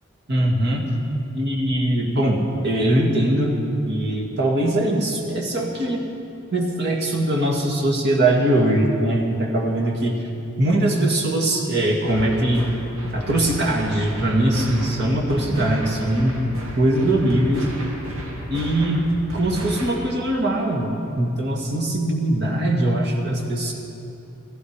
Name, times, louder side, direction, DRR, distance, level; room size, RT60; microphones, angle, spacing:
voice 1, 0.3-1.0 1.3-6.0 6.5-10.1 10.6-12.6 13.1-16.4 16.8-17.7 18.5-19.1 19.3-23.7, right 1 dB, 55° right, 0 dB, 2.1 m, -21 dB
sound 1, 12.0-20.0, equal, 85° right, 2.4 m, -34 dB
15.5 x 15.0 x 4.9 m, 2.7 s
head